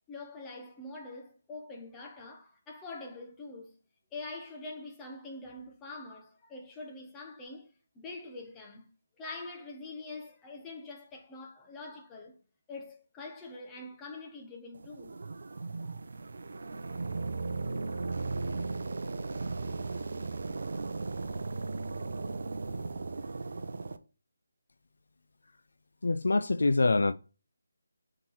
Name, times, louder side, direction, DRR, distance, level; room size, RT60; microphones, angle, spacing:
voice 1, 0.1-3.7 4.1-7.7 7.9-8.9 9.2-12.4 12.7-15.2, left 2 dB, 10° left, 0.8 m, -44 dB
sound 1, 14.7-24.0, right 3 dB, 55° right, 0.6 m, -36 dB
voice 2, 26.0-27.1, left 3 dB, 70° left, 0.3 m, -25 dB
6.1 x 3.9 x 4.4 m
figure-of-eight pair, 175°, 0 cm